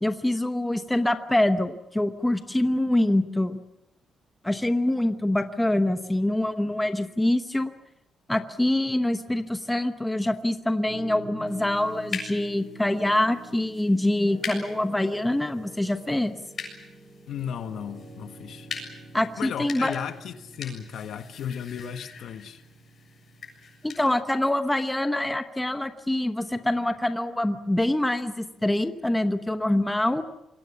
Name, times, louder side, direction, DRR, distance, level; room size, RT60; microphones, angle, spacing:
voice 1, 0.0-3.6 4.4-7.7 8.3-16.4 19.1-20.0 23.8-30.2, left 1 dB, 5° left, 1.0 m, -25 dB
Piano, 10.9-24.2, right 2 dB, 70° right, 7.8 m, -47 dB
sound 1, 11.5-24.0, left 5 dB, 35° left, 7.2 m, -42 dB
voice 2, 17.3-18.7 19.4-22.6, left 8 dB, 60° left, 1.6 m, -35 dB
27.5 x 23.5 x 7.2 m
cardioid pair, 180°, 0 cm